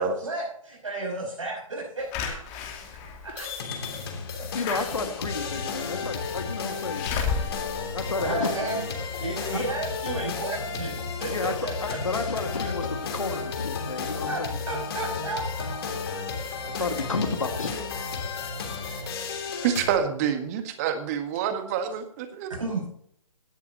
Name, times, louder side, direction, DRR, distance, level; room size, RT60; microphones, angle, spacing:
voice 1, 0.0-2.4 3.2-3.5 8.2-8.8 9.2-12.0 14.1-15.8 22.5-22.8, right 2 dB, 65° right, -5 dB, 5.8 m, -33 dB
Slam / Alarm, 2.1-8.9 9.4-9.5 9.7-9.8, left 6 dB, 25° left, 2.5 m, -34 dB
sound 1, 3.4-20.0, left 5 dB, 45° left, 3.1 m, -33 dB
voice 2, 4.5-7.1 7.9-8.5 9.5-9.6 11.2-14.6 16.6-17.8, left 4 dB, 70° left, 6 dB, 2.0 m, -31 dB
voice 3, 19.6-22.5, right 8 dB, 30° right, 8 dB, 1.8 m, -27 dB
17.5 x 11.5 x 3.0 m, 0.67 s
figure-of-eight pair, 135°, 17 cm